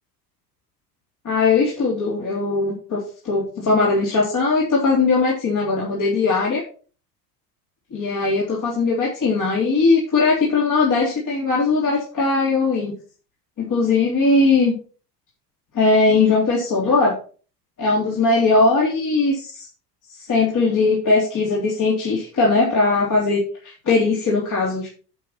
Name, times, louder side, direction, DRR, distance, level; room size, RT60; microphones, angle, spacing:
voice 1, 1.2-6.6 7.9-12.9 13.6-14.7 15.7-17.1 17.8-19.7 20.1-24.9, left 3 dB, 35° left, -4 dB, 3.4 m, -19 dB
11.0 x 6.2 x 4.3 m, 0.39 s
figure-of-eight pair, 70°, 49 cm